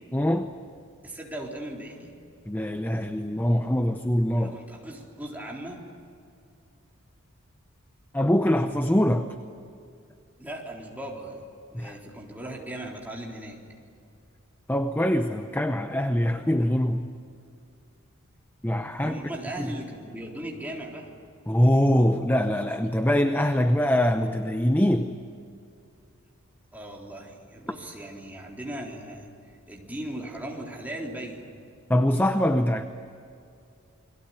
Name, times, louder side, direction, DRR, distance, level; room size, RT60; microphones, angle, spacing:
voice 1, 0.1-0.5 2.5-4.6 8.1-9.3 11.7-11.9 14.7-17.1 18.6-19.2 19.6-19.7 21.5-25.1 31.9-32.8, equal, 10° left, 8 dB, 0.8 m, -23 dB
voice 2, 1.0-2.1 4.4-5.9 10.4-11.4 11.7-13.6 19.0-21.1 26.7-29.3 29.7-31.4, right 1 dB, 10° right, -2 dB, 3.9 m, -38 dB
29.0 x 22.5 x 9.0 m, 2.4 s
head